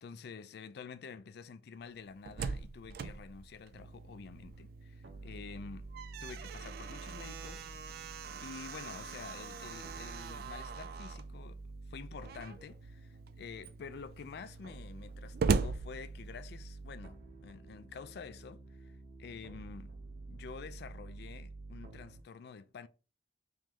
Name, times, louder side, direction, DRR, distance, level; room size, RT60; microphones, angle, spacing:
voice 1, 0.0-5.9 6.2-7.7 8.4-11.6 11.9-19.9 20.3-22.9, left 5 dB, 60° left, 0.4 m, -49 dB
Slam, 2.0-4.8 5.1-5.2 5.6-11.3 12.2-12.7 13.3-13.4 13.6-16.7, right 5 dB, 55° right, 0.3 m, -39 dB
sound 1, 3.7-22.2, right 2 dB, 90° right, 0.7 m, -49 dB
3.1 x 3.0 x 3.7 m
head